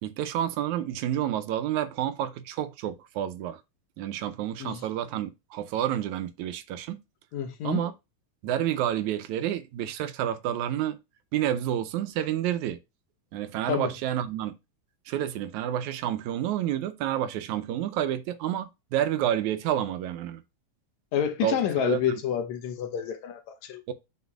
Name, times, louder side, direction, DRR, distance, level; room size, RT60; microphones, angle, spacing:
voice 1, 0.0-3.6 4.0-7.0 7.6-7.9 8.4-11.0 11.3-12.8 13.3-14.5 15.1-20.4 21.4-22.2 23.9-24.0, right 11 dB, 85° right, 2.1 m, -29 dB
voice 2, 7.3-7.8 13.7-13.9 21.1-23.8, left 9 dB, 75° left, 2.2 m, -29 dB
8.0 x 5.6 x 2.4 m
omnidirectional pair, 3.4 m